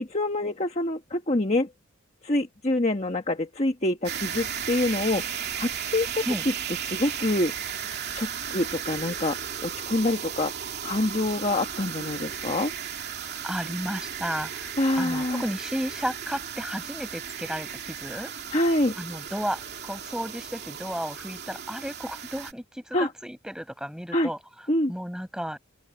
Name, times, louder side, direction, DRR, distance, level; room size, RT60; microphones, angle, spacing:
voice 1, 0.0-1.7 2.2-6.2 6.8-7.5 8.1-10.5 10.8-12.7 14.8-15.4 18.5-18.9 22.9-23.1 24.1-24.3 24.7-24.9, left 1 dB, 30° left, 1.4 m, -26 dB
sound 1, 4.0-22.5, right 8 dB, 45° right, 3.0 m, -35 dB
voice 2, 13.4-18.3 19.0-24.4 24.9-25.6, equal, 5° right, 5.7 m, -33 dB
open air
head